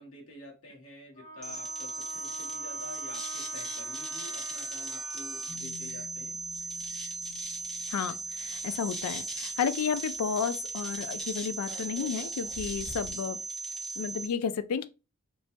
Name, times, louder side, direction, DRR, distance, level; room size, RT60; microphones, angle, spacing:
voice 1, 0.0-6.4, left 1 dB, 65° left, 1.2 m, -48 dB
Wind instrument woodwind instrument, 1.2-5.6, right 1 dB, 30° left, 1.1 m, -45 dB
sound 1, 1.4-14.3, right 3 dB, ahead, 0.4 m, -37 dB
sound 2, 5.5-10.1 10.5-10.6 10.9-13.1, left 3 dB, 40° right, 1.0 m, -50 dB
voice 2, 7.9-13.4 14.0-14.9, left 7 dB, 90° left, 0.3 m, -32 dB
3.1 x 2.2 x 2.6 m
head